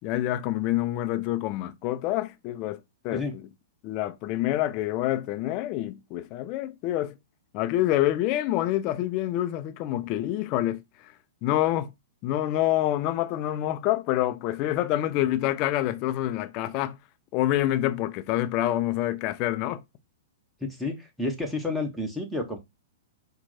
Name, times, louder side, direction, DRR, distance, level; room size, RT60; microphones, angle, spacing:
voice 1, 0.0-2.8 3.0-3.2 3.8-7.1 7.5-10.8 11.4-11.9 12.2-17.0 17.3-19.8, left 14 dB, 40° left, 0.5 m, -27 dB
voice 2, 20.6-22.6, left 2 dB, ahead, 1.0 m, -30 dB
4.4 x 2.2 x 4.2 m
figure-of-eight pair, 105°, 0 cm